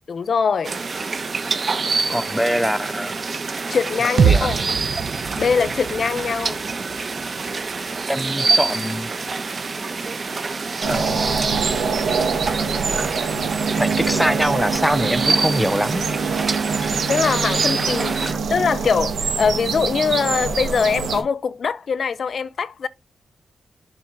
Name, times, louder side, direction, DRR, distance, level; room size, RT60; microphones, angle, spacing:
voice 1, 0.1-0.8 3.7-4.6 5.4-6.6 17.1-22.9, left 6 dB, 55° left, 0.6 m, -22 dB
sound 1, 0.6-18.3, right 4 dB, 40° right, 1.0 m, -26 dB
voice 2, 2.1-3.1 4.2-4.5 8.1-9.1 10.9-11.4 13.8-16.1 18.2-18.3, equal, ahead, 0.4 m, -23 dB
sound 2, 4.2-8.0, right 6 dB, 65° right, 0.5 m, -24 dB
sound 3, 10.8-21.2, right 5 dB, 80° right, 1.9 m, -24 dB
7.3 x 3.8 x 6.4 m
wide cardioid pair, 105°, 0 cm